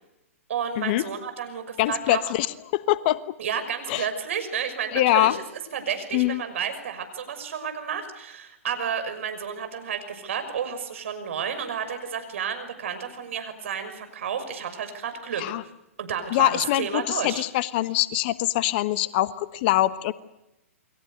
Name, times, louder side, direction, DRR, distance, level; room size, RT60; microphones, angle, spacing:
voice 1, 0.5-2.3 3.4-5.4 5.7-15.4 16.0-17.4, right 7 dB, 60° right, 9 dB, 5.9 m, -31 dB
voice 2, 1.8-2.5 2.7-3.2 3.9-4.1 4.9-5.4 6.1-6.4 15.4-15.6 16.3-20.1, left 16 dB, 45° left, 14 dB, 1.2 m, -23 dB
29.0 x 22.5 x 6.7 m, 0.92 s
hypercardioid pair, 120°, 8 cm